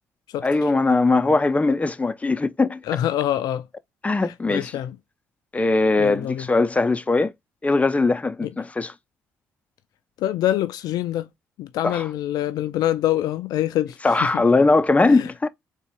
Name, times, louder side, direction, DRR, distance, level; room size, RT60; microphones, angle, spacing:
voice 1, 0.4-2.8 4.0-4.7 5.5-7.3 7.6-8.9 11.8-12.0 14.0-15.5, left 3 dB, 20° left, 0.5 m, -20 dB
voice 2, 2.9-3.7 4.5-5.0 6.0-6.5 8.4-8.5 10.2-11.3 11.6-14.4 15.1-15.3, left 12 dB, 65° left, 0.4 m, -25 dB
3.9 x 2.3 x 4.4 m
hypercardioid pair, 50°, 7 cm